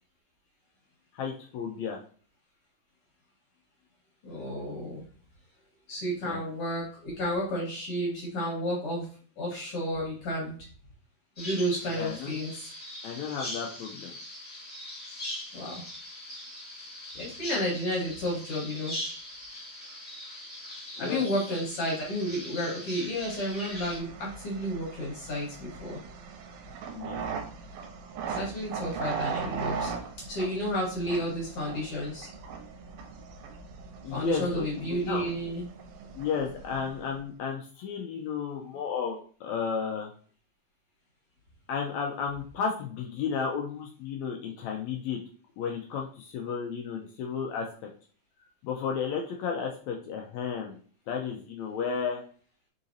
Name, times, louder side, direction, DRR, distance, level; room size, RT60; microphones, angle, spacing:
voice 1, 1.1-2.0 6.2-6.4 11.9-12.4 13.0-14.2 21.0-21.2 26.9-27.2 34.0-35.3 36.2-40.1 41.7-45.2 45.6-47.6 48.6-50.8 51.1-52.2, left 6 dB, 85° left, 1 dB, 1.6 m, -33 dB
voice 2, 4.2-5.0 5.9-9.1 9.4-10.6 11.4-12.7 15.5-15.8 17.2-19.0 21.0-26.0 28.2-29.9 30.3-32.3 34.1-35.7, equal, 55° left, -4 dB, 1.9 m, -31 dB
Bird vocalization bird call bird song, 11.4-24.0, left 1 dB, 20° left, 1.3 m, -41 dB
sound 1, 23.3-37.2, right 5 dB, 80° right, 2.1 m, -39 dB
4.9 x 3.9 x 2.6 m, 0.43 s
omnidirectional pair, 3.9 m